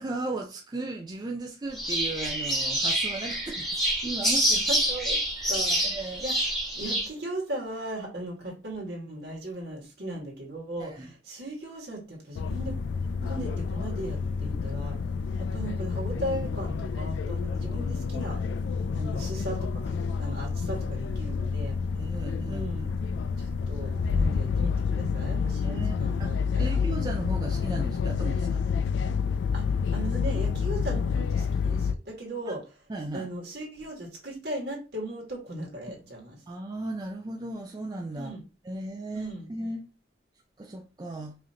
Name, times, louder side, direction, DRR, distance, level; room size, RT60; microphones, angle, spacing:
voice 1, 0.0-4.6 5.4-6.2 10.8-11.1 13.2-13.3 21.9-22.9 25.6-28.6 32.9-33.3 36.5-38.3 38.6-39.8 40.6-41.4, right 2 dB, 25° right, 0.4 m, -36 dB
sound 1, 1.7-7.1, right 1 dB, 5° left, 1.3 m, -27 dB
voice 2, 4.7-5.2 5.5-5.8 6.2-12.7 13.2-15.0 15.4-18.4 18.9-21.8 22.5-22.9 23.4-26.8 29.5-32.6 33.1-36.4 38.1-38.4 39.1-39.5, right 1 dB, 65° right, 1.7 m, -37 dB
sound 2, 12.4-31.9, left 5 dB, 85° left, 0.3 m, -29 dB
4.8 x 2.8 x 2.8 m
head